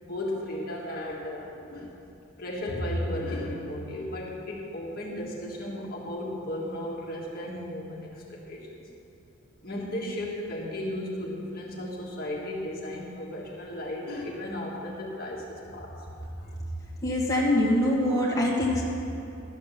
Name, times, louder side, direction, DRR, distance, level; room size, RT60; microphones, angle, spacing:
voice 1, 0.0-1.9 2.4-8.9 9.6-15.9 16.2-16.6, left 1 dB, 45° left, -3 dB, 1.6 m, -35 dB
voice 2, 17.0-18.8, left 1 dB, 15° left, -5 dB, 1.6 m, -24 dB
12.0 x 7.6 x 7.3 m, 2.9 s
head